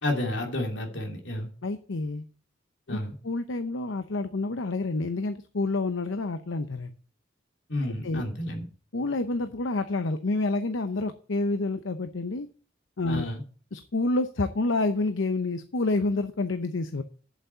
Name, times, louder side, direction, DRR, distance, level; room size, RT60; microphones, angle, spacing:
voice 1, 0.0-1.5 2.9-3.1 7.7-8.6 13.1-13.4, left 1 dB, 65° left, 2 dB, 2.8 m, -31 dB
voice 2, 1.6-2.2 2.9-3.0 3.2-6.9 7.8-8.2 8.9-12.5 13.0-13.3 13.7-17.0, left 2 dB, 85° left, 9 dB, 0.8 m, -28 dB
8.2 x 7.6 x 8.1 m, 0.42 s
head